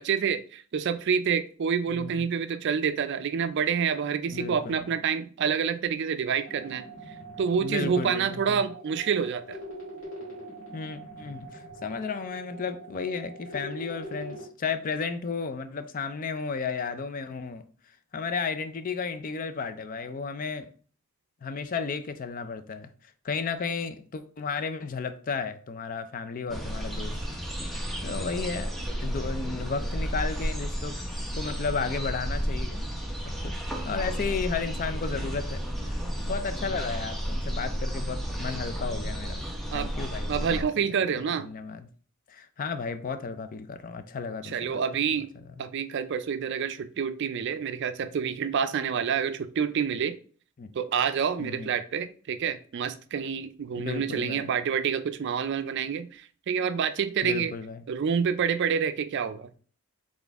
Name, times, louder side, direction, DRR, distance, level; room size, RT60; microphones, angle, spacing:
voice 1, 0.0-6.8 7.4-9.6 39.7-39.9 40.3-41.5 44.4-45.3 45.6-50.1 50.7-57.5 57.9-59.6, right 7 dB, 55° right, 0.4 m, -28 dB
voice 2, 1.9-2.3 4.3-4.8 7.6-8.6 10.7-17.6 18.1-20.7 21.4-22.9 23.2-27.2 28.0-28.7 29.0-31.0 31.4-32.8 33.4-35.6 35.9-40.6 41.4-41.9 42.3-44.8 45.3-45.6 50.6-50.7 51.4-51.7 53.8-54.5 57.2-57.8, left 5 dB, 40° left, 0.4 m, -33 dB
sound 1, 6.4-14.4, right 1 dB, 60° left, 2.1 m, -43 dB
sound 2, 26.5-40.6, equal, ahead, 0.6 m, -32 dB
4.0 x 3.6 x 3.4 m
head